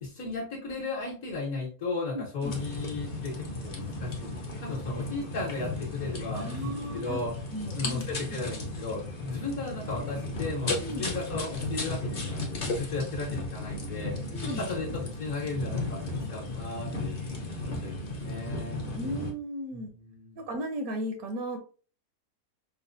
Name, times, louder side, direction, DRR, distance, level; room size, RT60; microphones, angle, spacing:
voice 1, 0.0-4.3 4.6-7.3 7.8-14.1 14.4-16.0 16.3-17.1 17.8-18.8 19.7-20.4, left 3 dB, 60° left, -5 dB, 1.3 m, -35 dB
voice 2, 2.1-2.5 6.3-7.2 7.5-8.0 8.3-8.4 10.8-11.1 14.3-14.7 18.9-19.9 20.4-21.6, equal, 75° right, 4 dB, 1.0 m, -35 dB
sound 1, 2.4-19.3, left 2 dB, 45° left, 0.7 m, -35 dB
4.8 x 2.1 x 2.5 m, 0.39 s
omnidirectional pair, 1.7 m